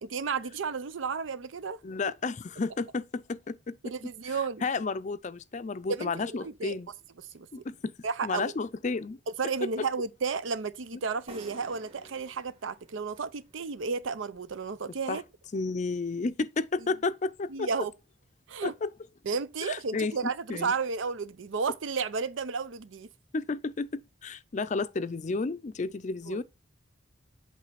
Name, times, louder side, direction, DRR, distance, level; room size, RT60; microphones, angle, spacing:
voice 1, 0.0-1.8 3.8-4.6 5.9-6.8 7.3-7.5 8.0-8.5 9.4-15.2 17.5-17.9 18.5-18.7 19.3-23.1 26.3-26.4, right 5 dB, 85° right, 0.6 m, -32 dB
voice 2, 1.8-3.9 4.3-6.9 7.5-7.9 8.2-9.2 9.6-9.7 14.9-15.2 15.5-17.9 18.6-18.9 19.6-20.7 23.3-23.9 24.2-26.4, left 3 dB, 40° left, 0.4 m, -32 dB
sound 1, 11.3-14.9, right 2 dB, 30° right, 1.4 m, -53 dB
8.2 x 3.2 x 5.7 m
head